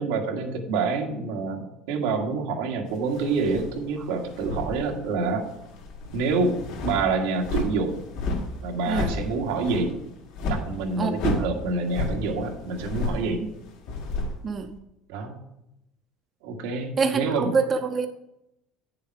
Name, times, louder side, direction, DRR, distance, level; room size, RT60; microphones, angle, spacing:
voice 1, 0.0-5.5 6.1-6.6 6.8-8.1 8.6-10.0 10.4-13.4 15.1-15.4 16.4-17.5, right 4 dB, 90° right, 2 dB, 1.6 m, -27 dB
sound 1, 3.1-5.3 5.6-14.7, left 2 dB, 75° left, 2.1 m, -32 dB
voice 2, 17.0-18.1, right 5 dB, 30° right, 6 dB, 0.6 m, -25 dB
8.9 x 6.9 x 4.6 m, 0.86 s
cardioid pair, 130°, 0 cm